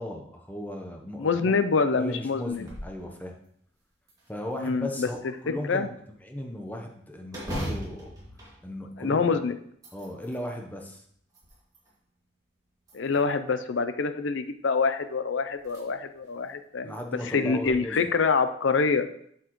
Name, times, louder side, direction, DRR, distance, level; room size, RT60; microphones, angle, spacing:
voice 1, 0.0-1.5 1.9-3.4 4.3-5.9 6.2-8.2 8.6-9.4 9.9-11.0 16.8-18.1, left 1 dB, 10° left, 2 dB, 0.8 m, -37 dB
voice 2, 1.2-2.7 4.6-5.1 5.7-5.9 9.0-9.6 12.9-16.9 17.3-19.1, left 4 dB, 75° left, 10 dB, 0.5 m, -25 dB
sound 1, 2.5-3.0 3.4-3.5 4.1-4.9 7.3-9.3 9.7-10.4 11.1-11.9 12.8-13.5 14.9-15.0 15.6-15.8 16.3-16.4 17.4-17.7, equal, 20° right, 2.1 m, -38 dB
7.8 x 7.1 x 3.0 m, 0.67 s
head